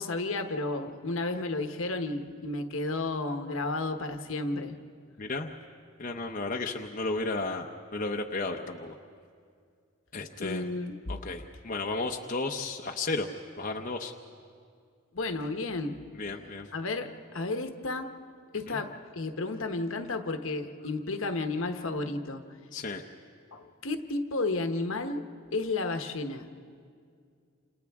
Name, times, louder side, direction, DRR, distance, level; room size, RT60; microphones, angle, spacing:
voice 1, 0.0-4.7 10.4-10.9 15.1-16.0 16.7-18.1 18.5-22.4 23.5-25.2 25.5-26.5, left 2 dB, 70° left, 6 dB, 1.1 m, -32 dB
voice 2, 5.2-5.5 6.0-7.7 7.9-9.0 10.1-10.7 11.1-13.3 13.6-14.1 16.1-16.7 18.7-18.8 22.7-23.0, left 3 dB, 40° left, 2 dB, 0.8 m, -33 dB
29.0 x 27.5 x 3.6 m, 2.2 s
head